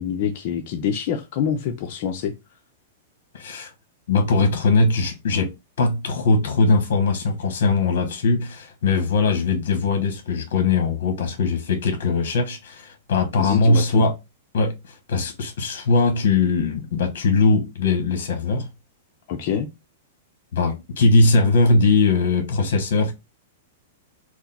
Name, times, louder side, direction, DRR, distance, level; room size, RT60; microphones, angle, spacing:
voice 1, 0.0-2.3 13.4-14.1 19.3-19.7, left 8 dB, 45° left, 0.6 m, -26 dB
voice 2, 3.3-3.7 4.1-5.5 5.8-14.1 14.5-18.7 20.5-23.1, left 3 dB, 70° left, 1.2 m, -20 dB
4.6 x 2.0 x 4.1 m
supercardioid pair, 150°, 0 cm